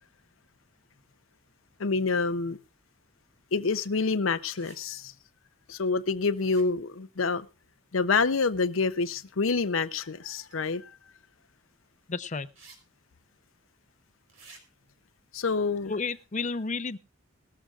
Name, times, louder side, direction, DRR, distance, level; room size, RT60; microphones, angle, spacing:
voice 1, 1.8-2.6 3.5-5.1 5.7-7.5 7.9-10.9 15.3-15.9, left 4 dB, 90° left, 12 dB, 0.7 m, -27 dB
sound 1, 4.5-4.8 6.3-6.9 10.5-10.6 12.5-12.8 13.1-13.2 14.3-14.6, right 4 dB, 75° right, 4.1 m, -52 dB
voice 2, 12.1-12.5 15.9-17.0, left 4 dB, 40° left, 14 dB, 0.7 m, -31 dB
18.5 x 14.0 x 2.5 m, 0.28 s
head